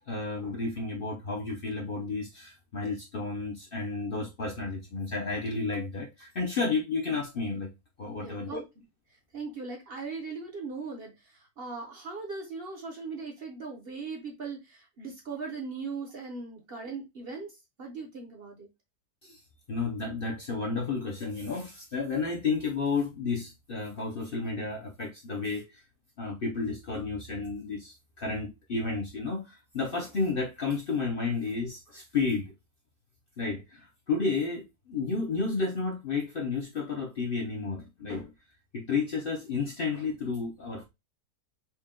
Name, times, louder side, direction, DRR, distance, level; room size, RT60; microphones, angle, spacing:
voice 1, 0.0-7.7 8.0-8.6 19.2-19.4 19.7-25.7 26.2-32.5 33.4-38.3 38.7-40.8, left 4 dB, 50° left, 0.7 m, -32 dB
voice 2, 8.2-8.8 9.1-18.7, right 4 dB, 45° right, 0.9 m, -39 dB
4.3 x 2.2 x 3.6 m
omnidirectional pair, 1.6 m